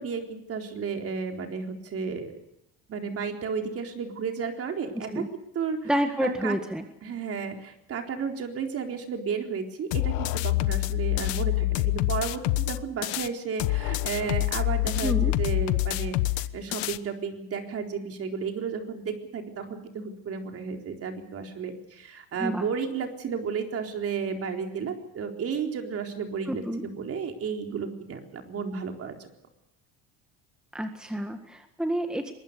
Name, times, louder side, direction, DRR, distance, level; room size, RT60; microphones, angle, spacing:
voice 1, 0.0-2.4 2.9-5.2 5.5-5.9 6.2-6.6 7.0-29.2, right 6 dB, 40° right, 4 dB, 4.0 m, -33 dB
voice 2, 5.0-5.3 5.8-6.8 15.0-15.3 22.4-22.7 26.5-26.9 30.7-32.3, right 1 dB, ahead, 6 dB, 1.7 m, -29 dB
sound 1, 9.9-13.3 13.6-17.0, left 17 dB, 85° left, 1.2 m, -26 dB
23.5 x 21.0 x 6.8 m, 0.85 s
cardioid pair, 135°, 37 cm